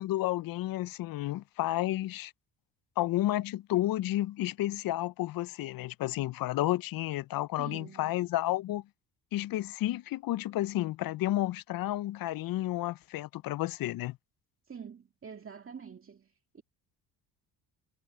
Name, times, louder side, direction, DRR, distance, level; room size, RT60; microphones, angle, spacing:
voice 1, 0.0-2.3 3.0-8.8 9.3-14.2, left 15 dB, 60° left, 0.6 m, -31 dB
voice 2, 7.6-8.2 14.7-16.6, right 6 dB, 30° right, 2.1 m, -46 dB
cardioid pair, 95°, 40 cm